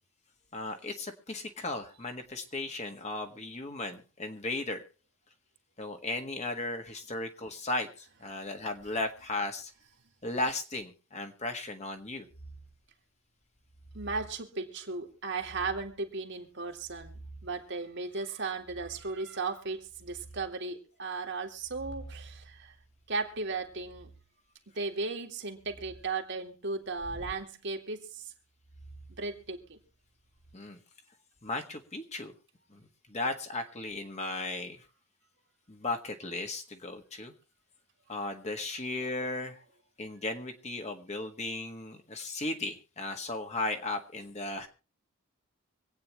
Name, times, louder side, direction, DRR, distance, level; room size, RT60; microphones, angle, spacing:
voice 1, 0.5-4.8 5.8-9.7 10.2-12.3 30.5-30.8 31.4-32.3 32.7-34.8 35.7-37.3 38.1-39.6 40.0-44.7, left 2 dB, 35° left, 5 dB, 1.6 m, -36 dB
sound 1, 12.3-12.8 13.6-14.4 15.3-16.0 16.6-17.7 18.6-19.2 19.6-20.5 21.5-24.2 25.6-26.1 27.0-27.4 28.6-29.8 30.3-30.5, right 2 dB, 60° left, 3.6 m, -50 dB
voice 2, 13.9-22.7 23.1-24.1 24.7-28.3 29.1-29.8, right 3 dB, 60° right, 3 dB, 2.0 m, -36 dB
25.5 x 9.0 x 3.1 m, 0.34 s
head